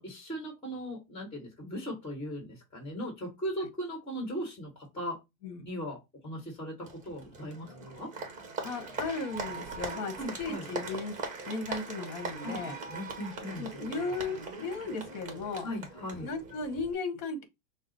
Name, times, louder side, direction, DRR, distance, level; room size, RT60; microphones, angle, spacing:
voice 1, 0.0-5.2 5.6-6.0 6.2-8.1 10.2-10.7 12.4-13.6 15.6-16.3, equal, 15° left, 1.4 m, -38 dB
Applause, 6.8-16.9, right 4 dB, 20° right, 1.0 m, -41 dB
voice 2, 8.6-11.1 11.4-12.7 13.6-15.7 16.2-17.4, left 3 dB, 35° left, 1.2 m, -36 dB
5.8 x 2.0 x 4.0 m
supercardioid pair, 150°, 42 cm